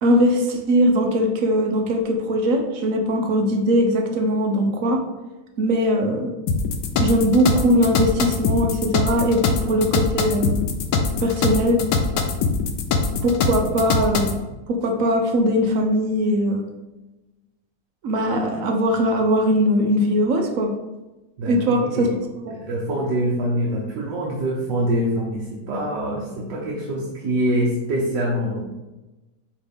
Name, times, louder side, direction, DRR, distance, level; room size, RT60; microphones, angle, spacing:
voice 1, 0.0-5.0 5.6-6.3 7.0-10.6 11.2-11.8 13.2-16.6 18.0-20.7 21.5-22.1 22.5-22.6, equal, 55° right, 3 dB, 1.1 m, -20 dB
sound 1, 6.5-14.4, left 4 dB, 80° left, 1.3 m, -22 dB
voice 2, 21.4-22.2 22.5-28.6, equal, 90° right, -3 dB, 1.6 m, -25 dB
8.3 x 3.3 x 3.5 m, 1.1 s
omnidirectional pair, 1.8 m